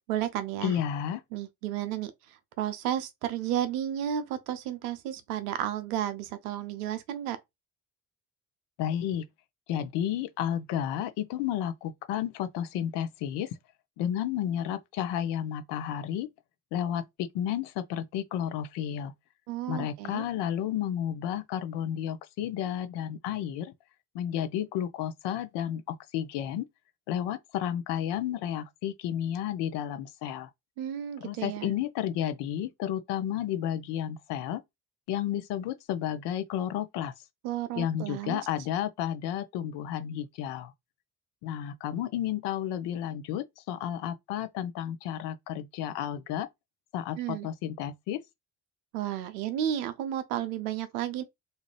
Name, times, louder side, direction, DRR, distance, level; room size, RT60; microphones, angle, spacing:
voice 1, 0.1-0.7 1.3-2.1 2.6-7.4 19.5-20.3 30.8-31.7 37.4-38.4 47.2-47.5 48.9-51.2, right 11 dB, 80° right, 0.6 m, -32 dB
voice 2, 0.6-1.2 8.8-9.3 9.7-13.6 14.0-16.3 16.7-19.1 19.7-23.7 24.1-26.7 27.1-30.5 31.2-34.6 35.1-37.1 37.8-40.7 41.4-46.5 46.9-48.2, left 10 dB, 65° left, 0.6 m, -32 dB
2.7 x 2.4 x 3.1 m
hypercardioid pair, 45°, 45 cm